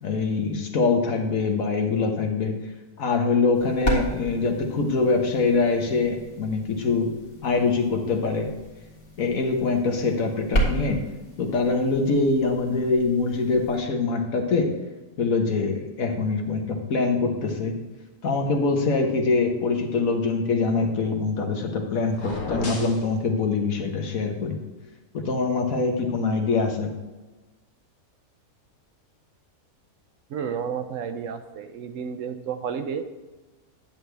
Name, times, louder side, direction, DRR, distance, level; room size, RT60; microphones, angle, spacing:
voice 1, 0.0-2.5 3.0-7.1 7.4-8.5 9.2-11.0 11.4-14.7 15.2-17.7 18.2-24.6 25.1-26.9, left 4 dB, 70° left, 4 dB, 1.5 m, -24 dB
sound 1, 3.5-13.8, right 1 dB, 50° left, 2.1 m, -33 dB
sound 2, 22.1-23.0, left 2 dB, 85° left, 2.1 m, -33 dB
voice 2, 30.3-33.0, right 7 dB, 70° right, 8 dB, 0.9 m, -31 dB
10.5 x 7.8 x 3.4 m, 1.2 s
omnidirectional pair, 1.5 m